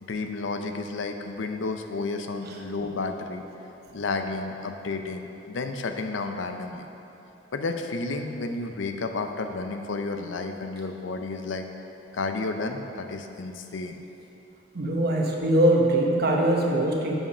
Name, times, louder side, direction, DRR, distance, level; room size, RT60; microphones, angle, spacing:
voice 1, 0.0-3.4 3.9-6.9 7.5-11.7 12.1-14.0, left 3 dB, 75° left, 6 dB, 0.6 m, -31 dB
voice 2, 14.7-17.1, right 1 dB, 55° right, 0 dB, 1.0 m, -22 dB
7.3 x 5.7 x 5.5 m, 3.0 s
head